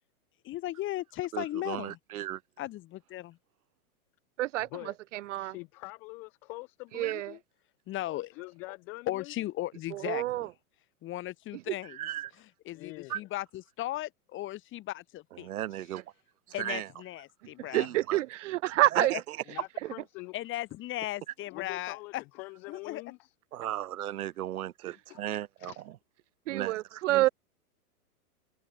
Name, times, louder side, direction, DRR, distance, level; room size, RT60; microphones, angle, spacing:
voice 1, 0.4-2.0 2.6-3.4 7.9-8.3 9.1-10.5 11.0-12.0 12.7-15.5 16.5-17.9 19.0-19.1 20.3-22.2 22.7-23.0, left 15 dB, 25° left, 3.8 m, -36 dB
voice 2, 1.3-2.4 7.0-7.1 11.9-12.3 13.1-13.2 15.3-16.0 16.6-16.9 17.7-18.2 18.9-19.4 23.5-26.0 26.5-27.3, right 13 dB, 70° right, 2.5 m, -36 dB
voice 3, 4.4-4.7 5.1-5.5 6.9-7.3 9.9-10.5 17.7-19.1 26.5-27.3, right 16 dB, 50° right, 0.9 m, -27 dB
voice 4, 5.3-7.4 8.1-9.3 12.7-13.3 19.5-20.3 21.5-23.3 25.1-25.2 25.6-25.8, left 26 dB, 5° left, 0.3 m, -44 dB
open air
hypercardioid pair, 150°, 46 cm